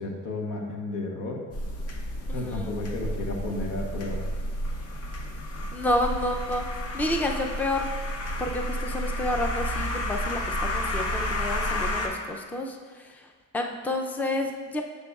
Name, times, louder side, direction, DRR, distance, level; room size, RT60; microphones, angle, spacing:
voice 1, 0.0-1.4 2.3-4.2, left 2 dB, 80° left, 1 dB, 1.1 m, -32 dB
sound 1, 1.5-12.1, left 1 dB, 55° left, 0.8 m, -31 dB
voice 2, 2.3-2.8 5.7-7.9 8.4-13.3 13.5-14.8, left 1 dB, 5° left, 3 dB, 0.4 m, -30 dB
6.8 x 6.5 x 2.4 m, 1.5 s
cardioid pair, 90°, 30 cm